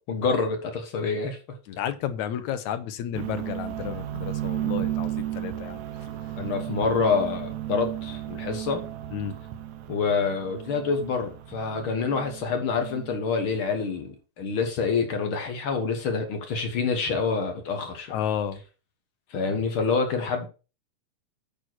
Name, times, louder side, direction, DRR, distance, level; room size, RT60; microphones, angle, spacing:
voice 1, 0.1-1.6 6.4-8.8 9.9-18.2 19.3-20.5, left 5 dB, 55° left, 1.7 m, -27 dB
voice 2, 1.7-5.8 9.1-9.4 18.1-18.6, left 9 dB, 80° left, 2.2 m, -31 dB
sound 1, 3.1-13.4, right 12 dB, 75° right, 2.1 m, -34 dB
9.1 x 4.4 x 6.1 m
omnidirectional pair, 3.4 m